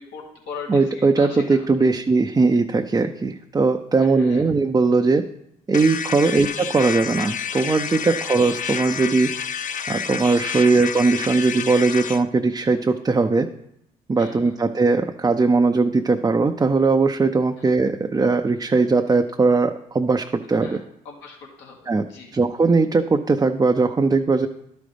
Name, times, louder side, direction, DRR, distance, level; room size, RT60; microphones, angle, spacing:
voice 1, 0.0-1.6 4.0-4.4 6.2-6.4 8.0-8.3 10.5-10.7 14.2-14.5 17.6-17.7 20.5-20.8 21.1-22.3, left 5 dB, 75° left, 0 dB, 1.9 m, -40 dB
voice 2, 0.7-5.2 5.7-9.3 9.9-13.5 14.1-20.8 21.9-22.1 22.3-24.5, right 3 dB, 20° right, 4 dB, 0.5 m, -19 dB
sound 1, 5.7-12.2, left 7 dB, 45° left, 0.5 m, -29 dB
12.0 x 5.1 x 3.4 m, 0.78 s
supercardioid pair, 60°, 19 cm